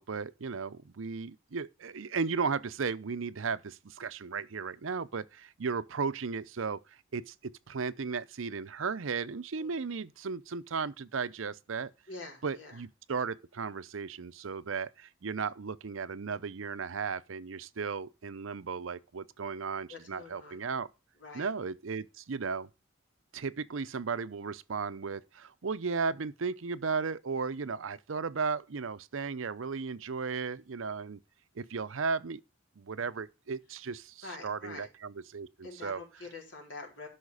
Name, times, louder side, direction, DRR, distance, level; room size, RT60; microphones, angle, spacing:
voice 1, 0.0-11.9 12.4-20.9 21.3-22.7 23.3-31.2 31.6-32.4 32.8-36.0, right 5 dB, 85° right, 0.6 m, -35 dB
voice 2, 12.1-12.8 19.9-20.6 21.2-21.5 34.2-34.9 35.6-37.1, left 3 dB, 70° left, 4.1 m, -46 dB
12.5 x 5.8 x 4.9 m
head